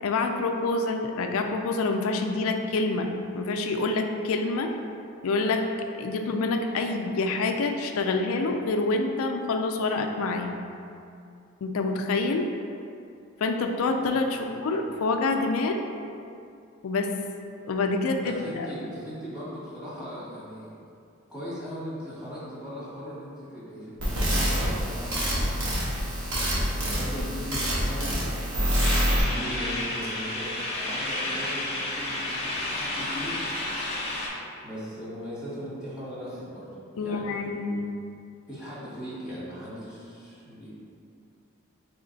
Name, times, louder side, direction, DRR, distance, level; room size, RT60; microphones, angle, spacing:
voice 1, 0.0-4.7 5.2-5.6 6.0-10.5 11.6-12.5 13.4-15.8 16.8-17.1 17.6-18.7 37.0-37.9, left 3 dB, 70° left, 4 dB, 0.4 m, -27 dB
voice 2, 18.2-20.7 21.3-25.4 26.7-28.5 29.2-33.5 34.6-36.7 37.0-37.5 38.5-40.7, equal, 5° right, -11 dB, 1.3 m, -38 dB
sound 1, 24.0-29.2, equal, 85° right, 1.2 m, -26 dB
sound 2, 28.8-34.3, left 1 dB, 30° left, 0.6 m, -31 dB
3.4 x 3.1 x 3.9 m, 2.5 s
head